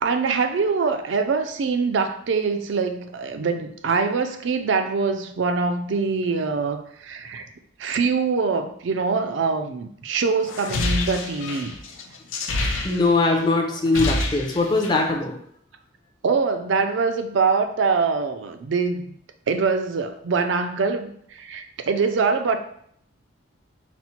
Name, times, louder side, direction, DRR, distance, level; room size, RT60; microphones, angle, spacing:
voice 1, 0.0-7.5 7.8-11.7 14.0-14.1 16.2-19.1 19.5-22.6, right 4 dB, 70° right, 8 dB, 0.4 m, -24 dB
sound 1, 10.5-13.4 13.7-15.1, left 2 dB, 80° left, 0.5 m, -27 dB
voice 2, 12.8-15.3, left 3 dB, 20° left, 1 dB, 0.5 m, -21 dB
4.1 x 2.1 x 4.3 m, 0.66 s
head